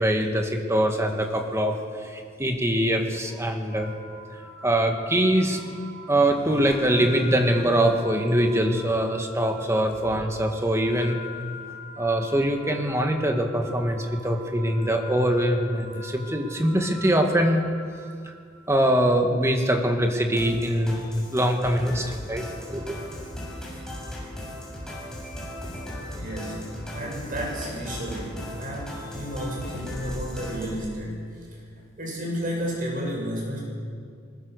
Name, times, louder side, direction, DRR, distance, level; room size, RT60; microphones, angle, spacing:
voice 1, 0.0-1.8 2.1-3.9 4.6-5.6 6.1-11.2 12.0-17.6 18.7-22.4 22.7-23.0, right 1 dB, 15° right, 3 dB, 2.1 m, -23 dB
sound 1, 3.7-18.8, left 2 dB, 30° left, 7.8 m, -43 dB
sound 2, 20.3-30.8, equal, 5° left, 6.8 m, -37 dB
voice 2, 26.1-31.5 32.0-33.6, equal, 50° right, -2 dB, 7.4 m, -32 dB
21.0 x 20.5 x 6.8 m, 2.2 s
head